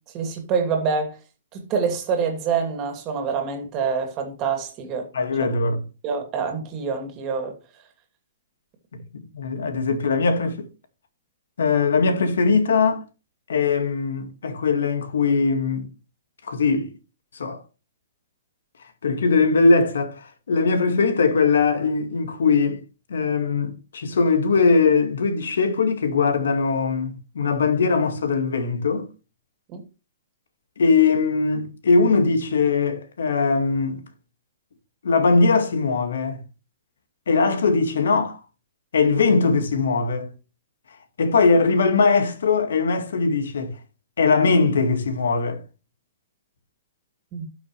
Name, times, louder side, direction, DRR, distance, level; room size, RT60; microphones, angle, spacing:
voice 1, 0.1-1.2 1.5-5.1 6.0-7.5 29.7-29.8 47.3-47.5, right 5 dB, 25° right, 2.5 m, -26 dB
voice 2, 5.1-5.8 9.1-10.7 11.6-13.0 13.5-15.9 16.5-16.9 17.3-17.6 19.0-22.8 23.1-29.1 30.8-34.0 35.0-36.4 37.3-38.4 38.9-40.3 41.2-43.7 44.2-45.6, left 4 dB, 85° left, 1.9 m, -20 dB
12.5 x 6.0 x 3.2 m
hypercardioid pair, 160°, 0 cm